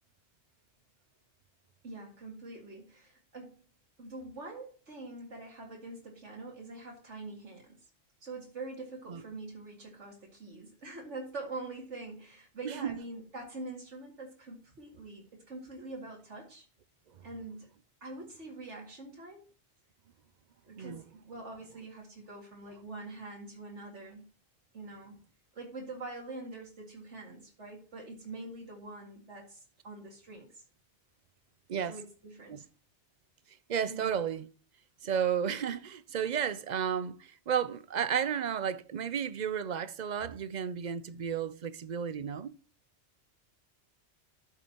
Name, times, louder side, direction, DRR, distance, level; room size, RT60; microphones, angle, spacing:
voice 1, 1.8-3.6 4.0-7.8 8.2-16.7 17.2-17.7 18.0-19.4 20.7-24.3 24.7-25.2 25.5-30.6 31.9-32.7 33.9-34.2, right 2 dB, 90° right, 2.6 m, -44 dB
voice 2, 33.7-34.5 35.0-42.5, right 8 dB, 50° right, 0.6 m, -32 dB
13.0 x 6.7 x 2.9 m
omnidirectional pair, 1.2 m